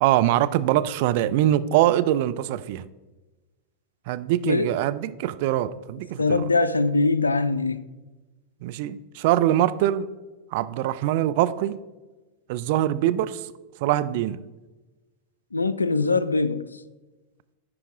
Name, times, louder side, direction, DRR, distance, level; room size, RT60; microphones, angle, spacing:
voice 1, 0.0-2.8 4.1-6.5 8.6-10.1 10.5-11.8 12.5-13.5 13.8-14.4, right 13 dB, 50° right, 0.3 m, -23 dB
voice 2, 6.2-7.8 15.5-16.7, left 3 dB, 80° left, 0.3 m, -22 dB
9.8 x 4.8 x 3.5 m
figure-of-eight pair, 90°, 0 cm